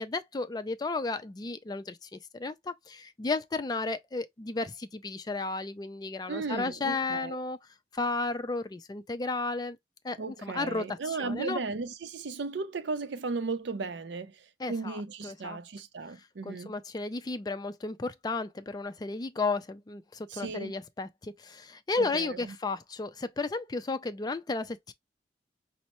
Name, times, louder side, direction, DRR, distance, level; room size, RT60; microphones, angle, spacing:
voice 1, 0.0-7.6 7.9-9.8 10.0-11.6 14.6-15.0 15.2-15.6 16.4-24.9, left 3 dB, 20° left, 0.3 m, -33 dB
voice 2, 6.3-7.4 10.2-16.7 20.3-20.7 22.0-22.6, right 4 dB, 85° right, 0.5 m, -36 dB
5.3 x 2.0 x 2.9 m
head